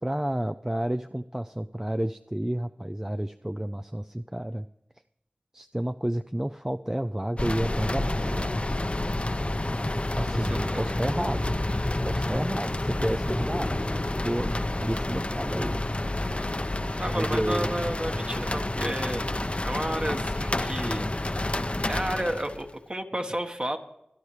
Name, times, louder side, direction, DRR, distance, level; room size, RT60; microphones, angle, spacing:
voice 1, 0.0-4.6 5.5-8.5 9.9-11.5 12.0-13.8 14.2-15.8 16.4-16.5 17.1-17.7, right 1 dB, 15° right, 8 dB, 0.4 m, -31 dB
sound 1, 7.4-22.7, left 1 dB, 40° left, 0.7 m, -29 dB
voice 2, 10.3-10.9 17.0-19.3 19.6-21.1 21.9-23.8, right 1 dB, 30° right, 5 dB, 1.4 m, -32 dB
25.0 x 10.5 x 3.3 m, 0.82 s
wide cardioid pair, 45°, 3 cm